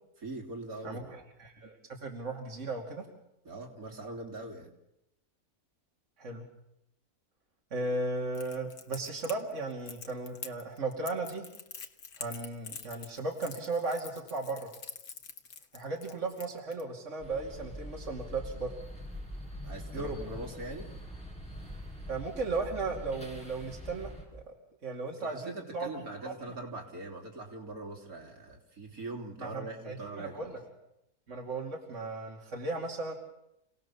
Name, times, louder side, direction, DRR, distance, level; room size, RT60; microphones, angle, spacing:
voice 1, 0.2-1.1 3.4-4.7 19.6-20.9 25.1-30.6, right 2 dB, 75° right, 1 dB, 3.9 m, -42 dB
voice 2, 0.8-3.1 6.2-6.5 7.7-11.5 12.2-14.7 15.7-18.7 19.9-20.2 22.1-24.5 24.8-25.9 26.2-26.3 29.4-30.5 31.3-33.1, right 3 dB, 55° right, 0 dB, 3.0 m, -36 dB
Crackle, 8.3-16.8, left 6 dB, 80° left, 1.9 m, -46 dB
sound 1, 17.2-24.2, equal, 5° left, 5.5 m, -43 dB
29.5 x 18.5 x 7.1 m, 0.83 s
omnidirectional pair, 1.6 m